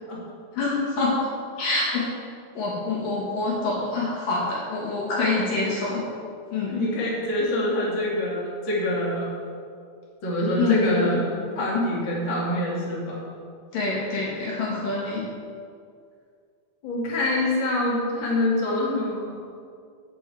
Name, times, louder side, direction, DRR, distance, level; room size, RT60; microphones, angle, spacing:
voice 1, 0.6-1.1 1.6-2.0 2.5-6.0 6.5-6.8 10.6-11.1 13.7-15.2, left 3 dB, 50° left, -6 dB, 3.4 m, -26 dB
voice 2, 6.6-9.3 10.2-13.2 16.8-19.4, left 1 dB, 35° left, -6 dB, 2.3 m, -25 dB
9.0 x 8.0 x 7.8 m, 2.2 s
omnidirectional pair, 5.4 m